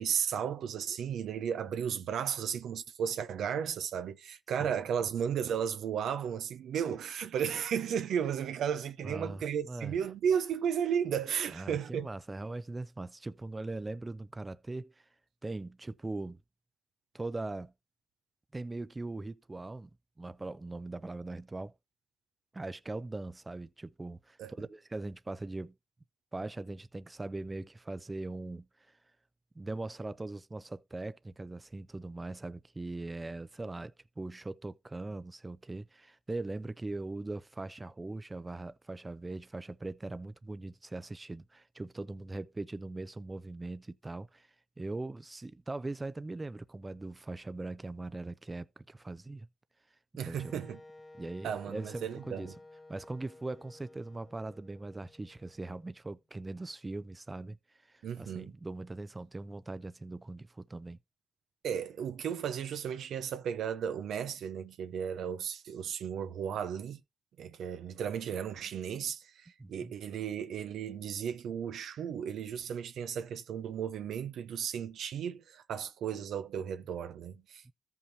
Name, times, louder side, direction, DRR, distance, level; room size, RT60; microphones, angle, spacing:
voice 1, 0.0-12.1 24.4-24.5 50.2-50.8 51.4-52.5 58.0-58.5 61.6-67.0 67.4-77.7, right 8 dB, 90° right, 0.6 m, -34 dB
voice 2, 9.0-10.0 11.5-15.1 15.4-16.4 17.1-17.7 18.5-19.9 20.2-21.7 22.5-25.8 26.3-29.0 29.6-49.5 50.2-50.6 51.1-52.5 52.9-61.0 69.6-69.9 77.6-77.7, right 2 dB, 30° right, 0.4 m, -41 dB
Wind instrument woodwind instrument, 50.4-56.2, left 2 dB, 30° left, 0.9 m, -55 dB
14.0 x 5.5 x 2.7 m
cardioid pair, 50°, 0 cm